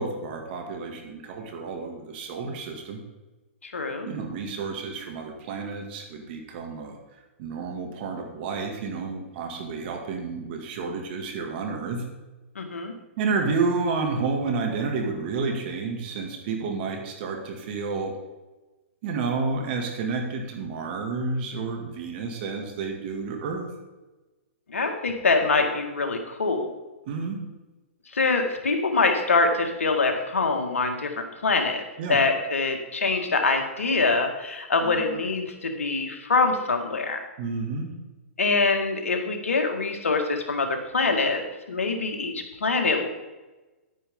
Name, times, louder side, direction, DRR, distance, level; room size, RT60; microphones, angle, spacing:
voice 1, 0.0-3.0 4.1-7.0 7.4-12.1 13.2-18.2 19.0-23.7 27.1-27.4 32.0-32.2 34.8-35.2 37.4-37.9, right 4 dB, 50° right, 3 dB, 2.2 m, -30 dB
voice 2, 3.6-4.1 12.6-12.9 24.7-26.7 28.1-31.8 32.1-37.2 38.4-41.4 41.7-43.1, left 3 dB, 85° left, 4 dB, 1.7 m, -24 dB
10.0 x 9.4 x 3.7 m, 1.1 s
hypercardioid pair, 125°, 7 cm